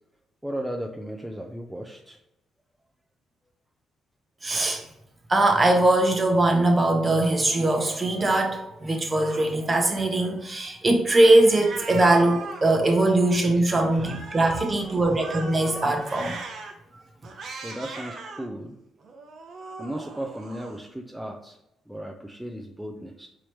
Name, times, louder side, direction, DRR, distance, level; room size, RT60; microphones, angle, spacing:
voice 1, 0.4-2.2 17.6-18.7 19.8-21.6 21.9-23.3, right 1 dB, 5° right, 1 dB, 0.4 m, -35 dB
voice 2, 4.4-4.8 5.3-16.4, right 2 dB, 25° right, 3 dB, 0.9 m, -21 dB
Cat, 7.2-8.6 9.1-10.5 11.1-13.4 13.9-16.7 17.2-18.5 19.0-20.8, right 4 dB, 60° right, 0.7 m, -40 dB
4.8 x 2.9 x 3.1 m, 0.85 s
cardioid pair, 90°, 0 cm